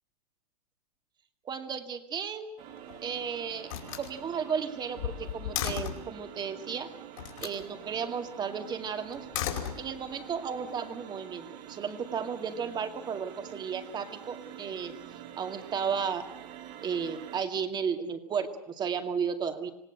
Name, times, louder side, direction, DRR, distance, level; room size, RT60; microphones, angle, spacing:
voice 1, 1.4-2.5 3.0-3.7 4.0-6.9 7.4-9.3 9.8-15.0 15.4-16.2 16.8-19.7, right 6 dB, 20° right, 6 dB, 2.3 m, -34 dB
Slam, 2.6-3.2 3.6-6.1 7.2-7.6 9.1-10.3, left 10 dB, 60° left, 5.4 m, -36 dB
sound 1, 2.6-17.4, right 11 dB, 40° right, 3.0 m, -47 dB
26.5 x 18.0 x 8.0 m, 0.83 s
hypercardioid pair, 120°, 20 cm